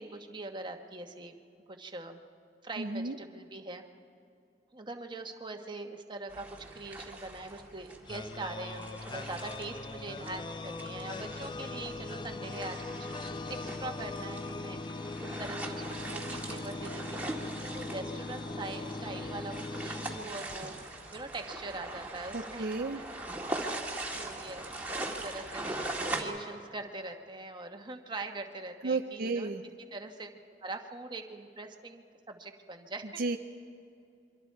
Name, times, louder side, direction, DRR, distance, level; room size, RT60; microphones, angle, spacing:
voice 1, 0.0-1.4 1.7-2.2 2.6-3.8 4.7-23.2 24.1-29.5 29.9-30.3 30.6-33.2, right 2 dB, 25° right, 4 dB, 1.3 m, -43 dB
voice 2, 2.8-3.1 22.3-23.0 28.8-29.6 33.2-33.4, right 3 dB, 55° right, 5 dB, 0.6 m, -32 dB
sound 1, 6.3-26.2, right 2 dB, 10° right, 2.1 m, -41 dB
sound 2, 8.1-21.0, left 3 dB, 25° left, 0.4 m, -40 dB
28.0 x 24.0 x 4.7 m, 2.6 s
head